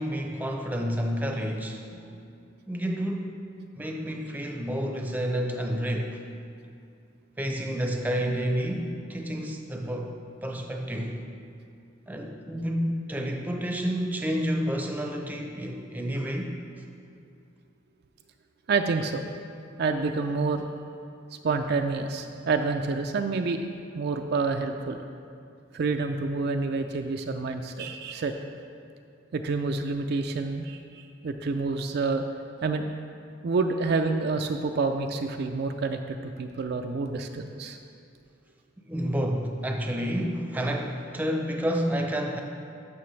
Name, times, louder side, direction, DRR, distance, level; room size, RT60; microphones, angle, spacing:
voice 1, 0.0-1.9 2.7-3.3 3.8-6.2 7.4-10.1 10.4-11.2 12.1-16.6 38.9-42.4, equal, 10° right, 2 dB, 0.6 m, -29 dB
voice 2, 18.7-19.3 19.8-20.7 21.4-23.6 23.9-25.0 25.7-28.3 29.3-32.2 32.6-32.9 33.4-37.8, right 4 dB, 55° right, 5 dB, 0.4 m, -28 dB
12.5 x 6.1 x 3.2 m, 2.4 s
head